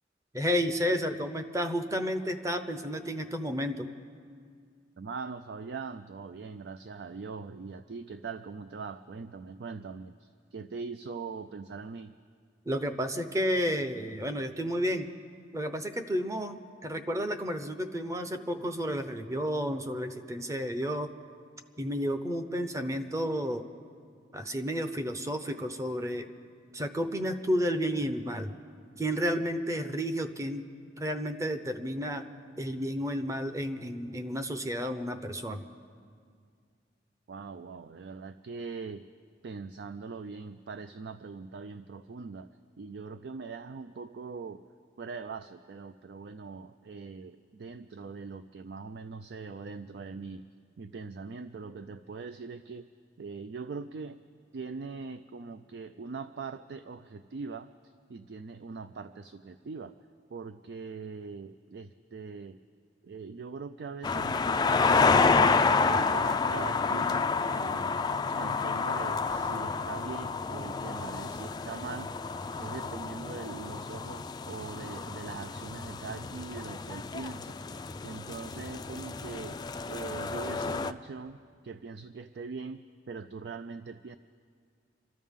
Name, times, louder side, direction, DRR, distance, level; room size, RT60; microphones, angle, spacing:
voice 1, 0.3-3.9 12.7-15.1 15.5-21.1 21.8-23.7 24.3-26.3 26.7-28.6 29.0-30.7 31.0-32.3 32.6-35.6, equal, 15° right, 8 dB, 0.7 m, -31 dB
voice 2, 5.0-12.1 37.3-39.0 39.4-44.6 45.0-50.4 50.8-52.9 53.2-54.2 54.5-59.9 60.3-62.6 63.0-65.3 65.6-68.0 68.3-72.1 72.6-77.6 78.0-79.6 79.9-84.2, right 4 dB, 65° right, 11 dB, 0.4 m, -42 dB
sound 1, 64.0-80.9, left 4 dB, 25° left, 0.3 m, -29 dB
26.5 x 13.5 x 3.7 m, 2.1 s
head